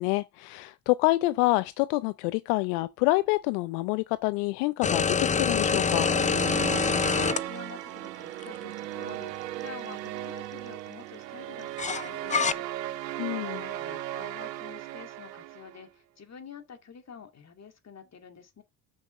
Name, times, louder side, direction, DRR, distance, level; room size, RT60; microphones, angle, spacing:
voice 1, 0.0-6.1 13.2-13.6, left 21 dB, 75° left, 0.6 m, -27 dB
sound 1, 4.8-7.4 8.4-8.5 11.8-12.5, left 6 dB, 15° left, 0.5 m, -25 dB
sound 2, 5.5-15.9, right 14 dB, 90° right, 0.7 m, -36 dB
voice 2, 6.6-18.6, left 6 dB, 30° left, 2.2 m, -48 dB
7.0 x 6.4 x 5.5 m
hypercardioid pair, 65°, 49 cm